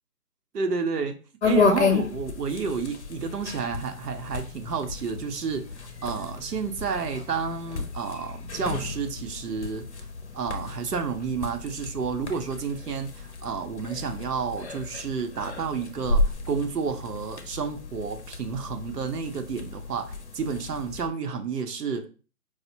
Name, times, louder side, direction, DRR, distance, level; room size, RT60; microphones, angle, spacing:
voice 1, 0.5-1.2 1.4-9.9 10.3-22.1, right 5 dB, 90° right, 0.8 m, -30 dB
sound 1, 1.4-21.1, left 4 dB, 50° left, 0.6 m, -32 dB
4.7 x 2.1 x 2.7 m
hypercardioid pair, 160°, 46 cm